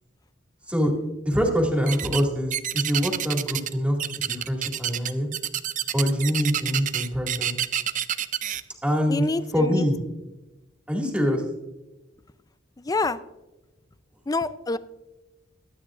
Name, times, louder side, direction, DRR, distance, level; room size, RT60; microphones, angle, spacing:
voice 1, 1.2-4.0 4.3-5.3 5.9-7.6 8.8-9.2 9.5-10.0 10.9-11.4, equal, 5° right, 0 dB, 2.2 m, -24 dB
sound 1, 1.9-2.2 2.5-3.7 4.0-8.6, right 10 dB, 40° right, 0.5 m, -28 dB
voice 2, 9.1-9.9 12.8-13.2 14.3-14.8, left 3 dB, 20° left, 14 dB, 0.4 m, -26 dB
23.0 x 9.0 x 2.5 m, 1.0 s
head